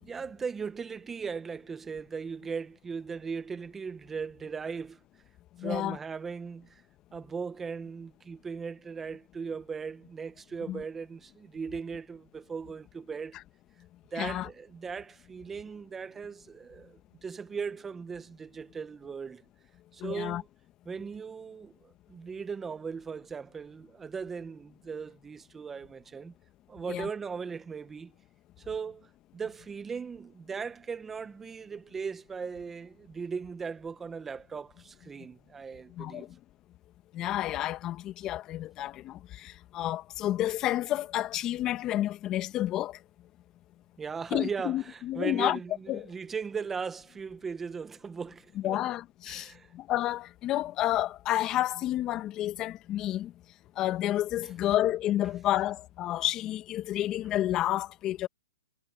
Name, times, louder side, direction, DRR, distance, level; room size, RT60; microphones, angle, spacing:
voice 1, 0.0-5.2 5.6-6.8 7.1-13.4 14.1-19.4 19.9-20.5 20.9-26.3 26.7-28.1 28.6-36.4 44.0-48.8 49.2-49.7 54.4-54.5, right 5 dB, 10° right, 0.8 m, -38 dB
voice 2, 5.6-6.0 10.7-10.8 14.2-14.5 20.0-20.4 26.9-27.1 36.0-36.3 37.1-43.0 44.3-45.6 45.9-46.1 48.6-53.3 53.8-58.3, left 14 dB, 25° left, 1.5 m, -30 dB
hypercardioid pair, 145°, 2 cm